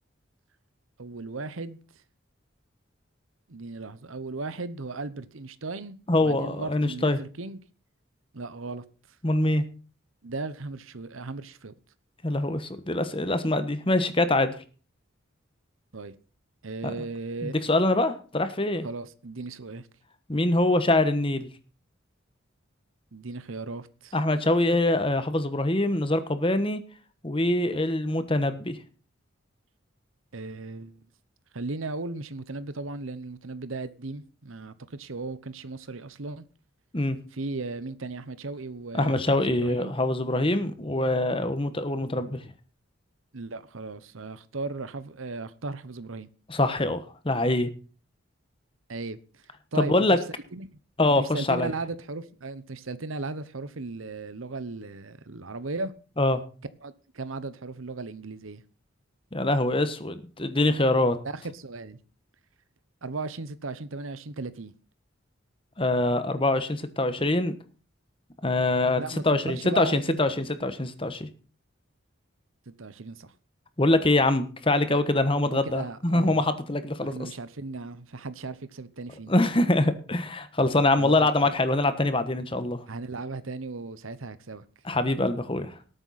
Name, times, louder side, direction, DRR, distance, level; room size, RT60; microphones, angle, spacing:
voice 1, 1.0-1.8 3.5-7.6 8.3-8.8 10.2-11.7 15.9-16.1 16.6-17.7 18.8-19.9 23.1-24.1 30.3-30.9 31.5-36.4 37.3-39.9 43.3-46.3 48.9-49.2 49.7-50.2 50.5-50.7 51.1-55.9 56.8-58.6 61.2-62.0 63.0-64.7 69.0-70.4 72.8-73.3 75.4-76.4 77.0-79.3 81.0-81.5 82.9-84.6, right 3 dB, 80° right, 1.0 m, -36 dB
voice 2, 6.1-7.2 9.2-9.6 12.2-14.6 16.8-16.9 17.4-18.9 20.3-21.5 24.1-26.8 27.2-28.8 36.9-37.2 38.9-42.4 46.5-47.7 49.7-50.2 51.0-51.7 56.2-56.4 59.3-61.2 65.8-67.5 68.4-71.3 73.8-77.3 79.3-82.8 84.8-85.8, left 2 dB, 25° left, 1.2 m, -24 dB
18.5 x 9.0 x 4.2 m
head